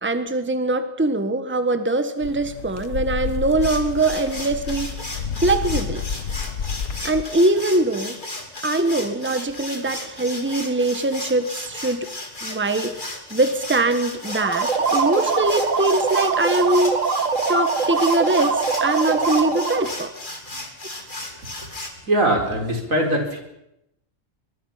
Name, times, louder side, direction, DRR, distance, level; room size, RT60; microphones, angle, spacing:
voice 1, 0.0-4.9 5.4-6.0 7.0-8.2 8.6-12.1 12.4-16.9 17.5-20.1, right 2 dB, 10° right, 9 dB, 1.3 m, -22 dB
sound 1, 2.2-7.2, left 7 dB, 80° left, 1.4 m, -30 dB
sound 2, 3.6-21.9, left 2 dB, 40° left, 3.2 m, -35 dB
sound 3, 14.3-20.0, right 5 dB, 75° right, 2.0 m, -23 dB
voice 2, 22.1-23.4, right 1 dB, 90° right, 2 dB, 4.7 m, -21 dB
23.5 x 23.0 x 5.8 m, 0.83 s
omnidirectional pair, 1.3 m